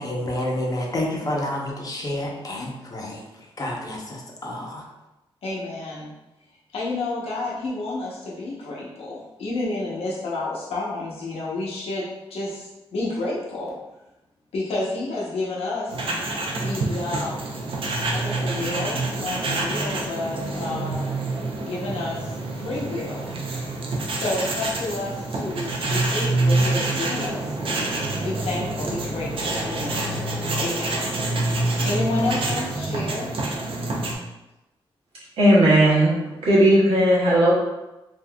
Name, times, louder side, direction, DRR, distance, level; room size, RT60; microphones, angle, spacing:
voice 1, 0.0-3.2 3.6-4.8, left 1 dB, 40° left, -1 dB, 0.7 m, -29 dB
voice 2, 5.4-6.1 6.7-13.7 14.5-16.0 16.5-17.6 18.1-21.1 21.6-23.3 24.1-27.6 28.2-30.2 30.6-31.2 31.5-33.3, left 2 dB, 80° left, -6 dB, 0.8 m, -30 dB
sound 1, 15.9-34.1, right 2 dB, 65° right, 0.6 m, -27 dB
voice 3, 35.4-36.1 36.4-37.5, right 1 dB, 80° right, -7 dB, 1.2 m, -16 dB
3.6 x 2.6 x 2.2 m, 0.98 s
cardioid pair, 80°, 10 cm